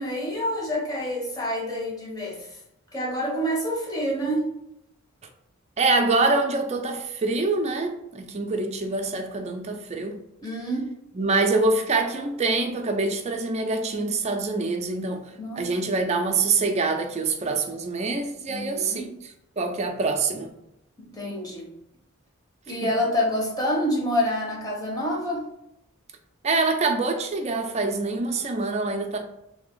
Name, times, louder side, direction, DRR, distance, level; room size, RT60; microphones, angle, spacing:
voice 1, 0.0-2.6 2.9-4.4 10.4-10.9 15.4-15.7 18.5-19.1 21.0-21.7 22.7-25.5, equal, 20° left, 1.0 m, -27 dB
voice 2, 5.8-10.2 11.1-15.3 15.6-19.0 19.6-20.5 22.7-22.9 26.4-29.2, right 3 dB, 30° right, 0.5 m, -25 dB
3.3 x 2.9 x 3.8 m
head